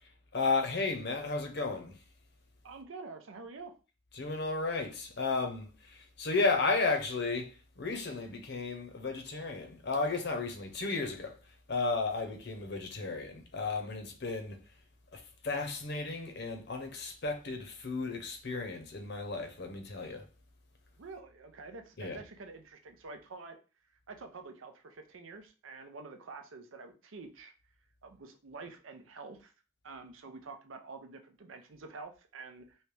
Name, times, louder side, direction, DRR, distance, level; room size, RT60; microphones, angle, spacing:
voice 1, 0.3-1.9 4.2-11.3 11.7-14.6 15.1-20.2 22.0-22.2, left 3 dB, 55° left, 0.7 m, -33 dB
voice 2, 2.6-3.7 21.0-23.6 24.1-27.5 28.0-29.5 29.8-32.8, right 3 dB, 85° right, 0.6 m, -47 dB
3.2 x 2.8 x 3.2 m
head